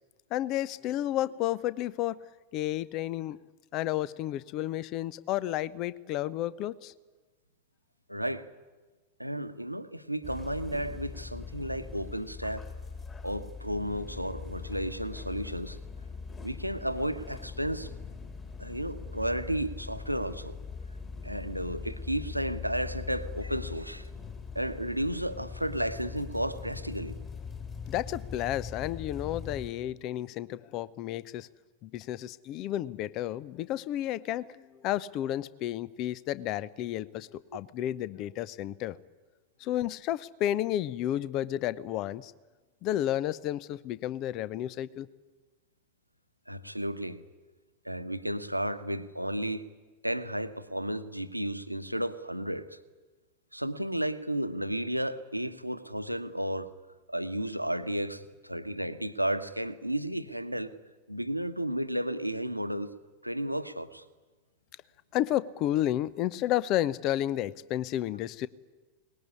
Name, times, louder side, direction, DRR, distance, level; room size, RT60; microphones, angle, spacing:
voice 1, 0.3-2.2 2.5-3.4 3.7-6.9 27.9-31.5 31.8-39.0 39.6-42.3 42.8-45.1 65.1-68.5, left 13 dB, 40° left, 19 dB, 0.8 m, -31 dB
voice 2, 8.1-8.5 9.2-12.7 13.2-15.8 16.4-17.9 18.6-20.6 21.2-24.1 24.5-27.2 37.5-37.6 39.7-39.8 46.5-47.2 47.8-49.6 50.0-52.8 53.5-56.7 57.1-60.7 61.1-62.9 63.2-64.0, right 1 dB, 90° right, 10 dB, 1.1 m, -33 dB
sound 1, 10.2-29.7, left 5 dB, 20° left, 3.8 m, -41 dB
23.0 x 20.0 x 9.8 m, 1.3 s
figure-of-eight pair, 90°, 0 cm